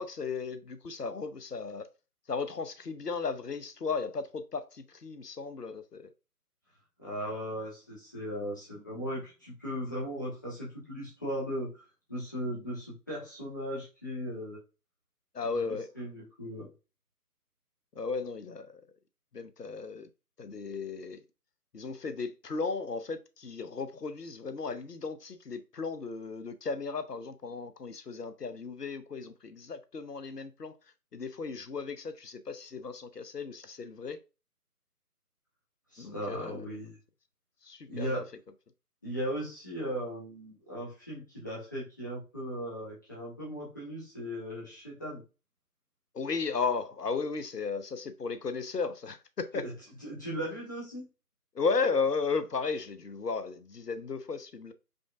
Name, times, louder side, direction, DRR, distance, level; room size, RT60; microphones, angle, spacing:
voice 1, 0.0-1.9 2.3-6.1 15.3-15.9 18.0-18.8 19.3-20.1 20.4-21.2 21.7-30.7 31.1-34.2 36.0-36.7 37.6-38.2 46.1-49.7 51.5-54.7, left 4 dB, 80° left, 0.8 m, -35 dB
voice 2, 7.0-11.8 12.1-14.6 15.5-16.7 35.9-37.0 37.9-38.3 39.0-45.2 49.5-49.7 50.0-51.1, equal, 10° left, 0.8 m, -37 dB
5.1 x 3.7 x 2.3 m
figure-of-eight pair, 150°, 47 cm